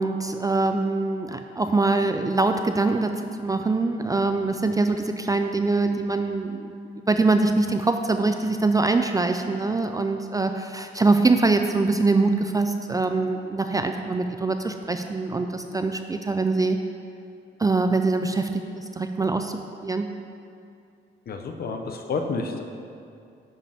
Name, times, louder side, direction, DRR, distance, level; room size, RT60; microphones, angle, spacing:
voice 1, 0.0-3.1 3.4-16.8 17.6-20.1, right 3 dB, 20° right, 6 dB, 0.4 m, -23 dB
voice 2, 21.3-22.6, left 4 dB, 50° left, 5 dB, 0.8 m, -29 dB
10.5 x 5.2 x 3.5 m, 2.5 s
cardioid pair, 90°, 20 cm